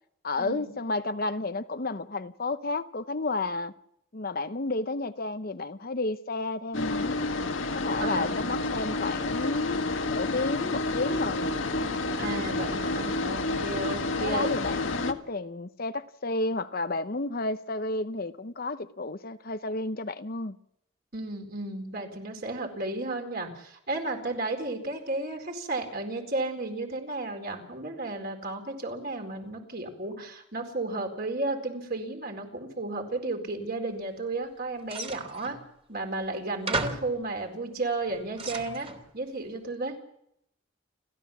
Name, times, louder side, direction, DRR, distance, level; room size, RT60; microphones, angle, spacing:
voice 1, 0.2-3.7 4.1-7.1 7.7-9.8 10.1-11.5 14.2-20.6, left 3 dB, 45° left, 0.9 m, -31 dB
sound 1, 6.7-15.1, left 2 dB, 70° left, 1.7 m, -29 dB
voice 2, 8.0-8.6 12.2-14.5 21.1-35.6 35.9-38.9 39.1-39.9, right 2 dB, 45° right, 4.3 m, -33 dB
sound 2, 34.9-35.6 36.3-36.4 36.7-37.2 37.9-39.0, right 2 dB, 30° right, 2.8 m, -34 dB
29.5 x 13.5 x 7.2 m
head